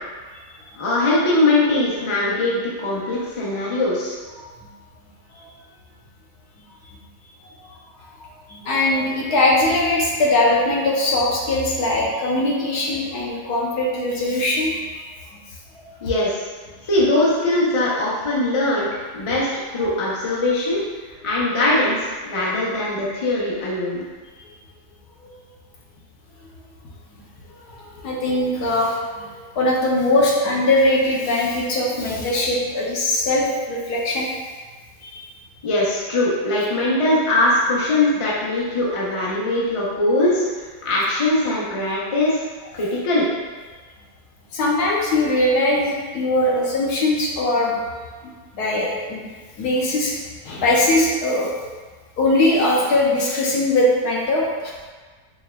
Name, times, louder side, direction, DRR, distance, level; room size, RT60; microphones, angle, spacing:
voice 1, 0.8-4.2 16.0-16.4 16.9-18.9 19.1-20.8 21.2-24.0 35.6-40.4 40.8-42.4 42.7-43.3, left 2 dB, 40° left, -6 dB, 0.4 m, -21 dB
voice 2, 8.2-15.0 15.8-15.9 19.8-19.9 24.4-24.5 27.7-34.3 35.0-35.3 44.5-47.8 48.5-49.2 49.6-50.1 50.4-51.5 52.2-54.7, left 1 dB, 75° left, -3 dB, 1.3 m, -21 dB
4.4 x 3.4 x 2.2 m, 1.4 s
omnidirectional pair, 1.7 m